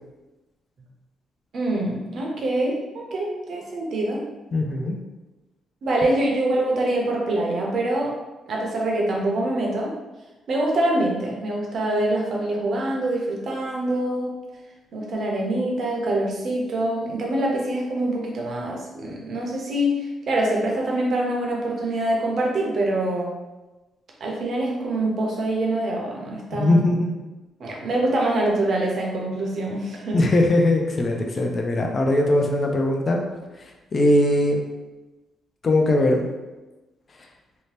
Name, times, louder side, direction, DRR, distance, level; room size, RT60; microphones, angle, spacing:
voice 1, 1.5-4.2 5.8-8.1 8.5-9.9 10.5-14.3 14.9-19.9 20.3-23.3 24.2-26.9 27.6-30.2, right 1 dB, 55° right, -2 dB, 0.7 m, -25 dB
voice 2, 4.5-5.0 26.5-27.1 30.1-33.2 33.9-34.6 35.6-36.3, left 1 dB, 35° left, 1 dB, 0.4 m, -20 dB
2.7 x 2.1 x 3.2 m, 1.1 s
cardioid pair, 125°, 0 cm